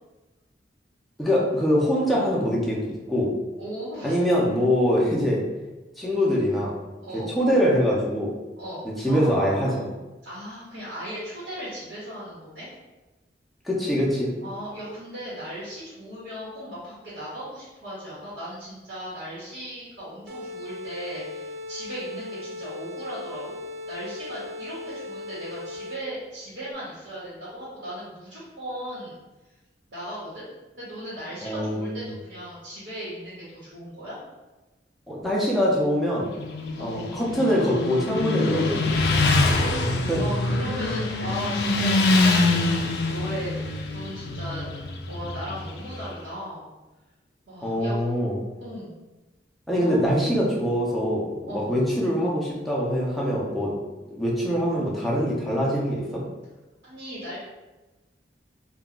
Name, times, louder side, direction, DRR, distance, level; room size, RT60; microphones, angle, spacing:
voice 1, 1.2-3.3 4.0-5.4 6.0-6.8 7.1-8.3 8.8-9.7 13.6-14.3 31.4-32.1 35.1-36.3 36.8-38.9 40.1-40.2 47.6-48.4 49.7-53.7 54.1-56.2, equal, ahead, -6 dB, 0.5 m, -23 dB
voice 2, 3.6-4.2 7.0-7.3 8.6-10.0 10.2-12.7 14.4-23.5 23.9-29.2 29.9-30.5 30.8-34.2 36.8-37.0 39.3-43.5 43.9-44.7 45.1-46.7 47.5-48.0 48.6-49.0 49.7-50.0 51.5-51.7 56.8-57.4, equal, 75° right, -9 dB, 1.1 m, -37 dB
sound 1, 20.3-26.2, left 2 dB, 55° right, 0.4 m, -38 dB
Motorcycle, 36.3-46.1, left 2 dB, 60° left, 0.3 m, -24 dB
2.3 x 2.2 x 3.7 m, 1.1 s
head